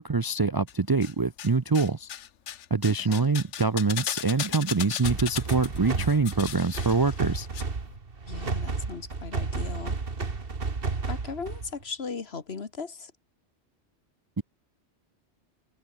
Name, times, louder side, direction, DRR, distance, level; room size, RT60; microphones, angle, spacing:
voice 1, 0.0-2.1 2.7-7.5 14.4-14.5, right 4 dB, 30° right, 0.4 m, -25 dB
sound 1, 0.7-1.5 1.7-7.6 7.9-8.0, left 10 dB, 85° left, 1.2 m, -36 dB
sound 2, 5.0-11.8, right 4 dB, 50° right, 2.1 m, -32 dB
voice 2, 8.3-10.0 11.1-13.1, left 5 dB, 60° left, 1.8 m, -37 dB
omnidirectional pair, 1.2 m